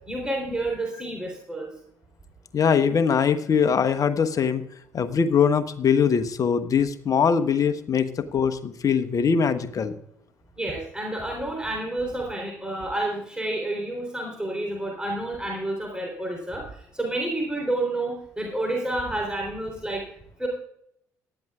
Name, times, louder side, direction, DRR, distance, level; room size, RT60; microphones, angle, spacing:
voice 1, 0.1-1.7 10.6-20.0 20.4-20.5, right 1 dB, 10° right, -1 dB, 3.7 m, -29 dB
voice 2, 2.5-4.6 4.9-10.0, left 6 dB, 45° left, 10 dB, 1.1 m, -22 dB
18.0 x 12.0 x 2.4 m, 0.74 s
figure-of-eight pair, 45°, 9 cm